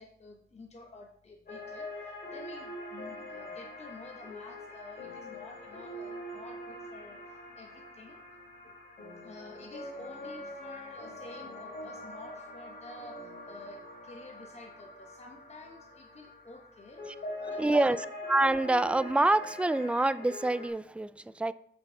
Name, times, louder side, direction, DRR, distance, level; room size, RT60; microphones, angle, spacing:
voice 1, 0.0-8.2 8.6-8.7 9.2-18.0, left 2 dB, 35° left, 1.0 m, -50 dB
sound 1, 1.5-20.7, left 1 dB, 50° left, 3.3 m, -43 dB
voice 2, 17.6-21.5, right 2 dB, 5° right, 0.3 m, -27 dB
7.8 x 6.8 x 3.8 m
cardioid pair, 90°, 20 cm